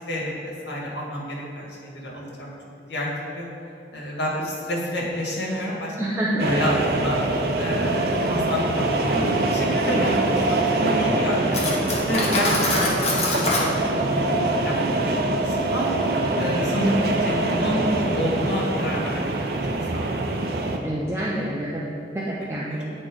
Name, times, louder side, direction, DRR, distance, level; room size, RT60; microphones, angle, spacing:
voice 1, 0.0-2.5 2.9-3.5 3.9-6.0 6.4-7.2 7.6-11.6 12.0-12.9 13.3-15.1 15.4-15.9 16.4-19.2 19.9-20.1 22.7-22.8, equal, 90° left, -3 dB, 1.7 m, -29 dB
voice 2, 6.0-6.6 11.1-11.5 12.5-13.1 20.8-22.9, right 1 dB, 15° right, -6 dB, 0.6 m, -28 dB
sound 1, 6.4-20.8, right 2 dB, 60° right, 0.6 m, -24 dB
Cutlery silverware, 11.5-13.7, left 2 dB, 35° left, 1.0 m, -24 dB
8.7 x 4.4 x 4.6 m, 2.7 s
head